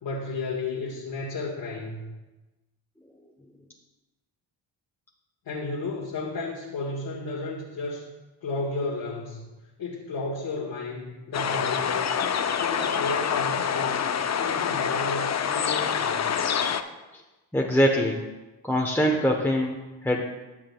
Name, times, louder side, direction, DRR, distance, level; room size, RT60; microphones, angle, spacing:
voice 1, 0.0-2.1 5.4-8.0 8.4-9.4 9.8-12.3 12.6-16.4, left 3 dB, 65° left, -4 dB, 1.7 m, -33 dB
sound 1, 11.3-16.8, left 7 dB, 35° left, 0.6 m, -26 dB
voice 2, 17.5-18.2 18.6-20.2, equal, 5° left, -1 dB, 0.9 m, -23 dB
13.5 x 7.5 x 2.3 m, 1.1 s
supercardioid pair, 60°, 46 cm